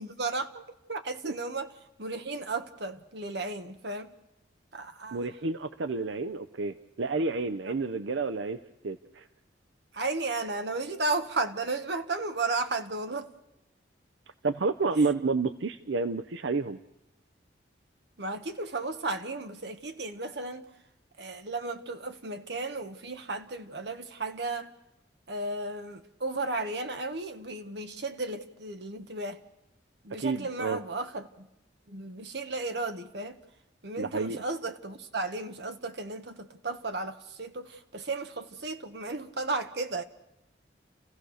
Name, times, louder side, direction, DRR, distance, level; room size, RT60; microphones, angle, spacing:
voice 1, 0.0-1.7 2.0-4.1 4.7-5.2 7.7-7.8 9.9-13.3 15.0-15.1 18.2-20.6 21.2-24.7 25.3-29.4 30.0-31.5 31.9-33.4 33.8-40.0, right 3 dB, 65° right, 1.4 m, -34 dB
voice 2, 5.1-9.2 14.4-16.8 30.2-30.8 34.0-34.4, right 3 dB, 85° right, 0.7 m, -30 dB
30.0 x 15.5 x 6.5 m
head